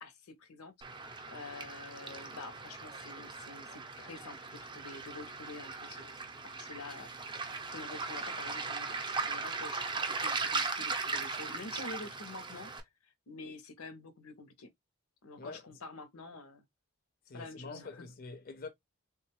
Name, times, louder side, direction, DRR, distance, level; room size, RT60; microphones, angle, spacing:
voice 1, 0.0-12.7 13.0-14.7 15.2-16.6 17.3-18.1, left 3 dB, 85° left, 0.7 m, -48 dB
Waves surf, 0.8-12.8, right 4 dB, 20° right, 0.5 m, -38 dB
voice 2, 17.3-18.7, left 3 dB, 40° left, 0.5 m, -45 dB
3.5 x 2.3 x 2.9 m
head